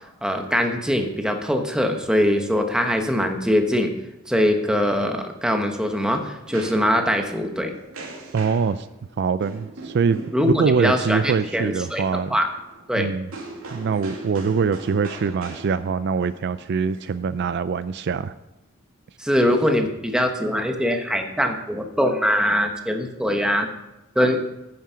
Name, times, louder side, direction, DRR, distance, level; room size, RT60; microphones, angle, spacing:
voice 1, 0.2-3.9 4.3-7.7 10.3-12.5 12.9-13.1 19.2-23.7 24.1-24.4, equal, 5° right, 4 dB, 1.1 m, -22 dB
sound 1, 5.4-17.8, right 2 dB, 90° right, 2.4 m, -41 dB
voice 2, 8.3-8.9 9.2-12.3 13.0-13.3 13.7-18.3, right 5 dB, 55° right, 14 dB, 0.4 m, -23 dB
9.6 x 9.4 x 5.7 m, 0.96 s
head